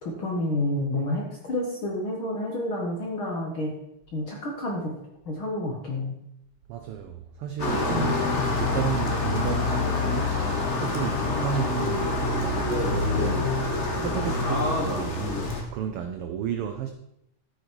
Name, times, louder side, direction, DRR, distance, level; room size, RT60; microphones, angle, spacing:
voice 1, 0.0-3.7 4.1-4.9 5.3-6.1 7.9-8.1, left 1 dB, 45° left, 2.3 m, -29 dB
voice 2, 6.7-13.6 14.0-15.3 15.7-16.9, right 9 dB, 75° right, 1.3 m, -32 dB
sound 1, 7.6-15.6, left 3 dB, 30° left, 1.6 m, -26 dB
12.5 x 9.2 x 4.7 m
omnidirectional pair, 3.5 m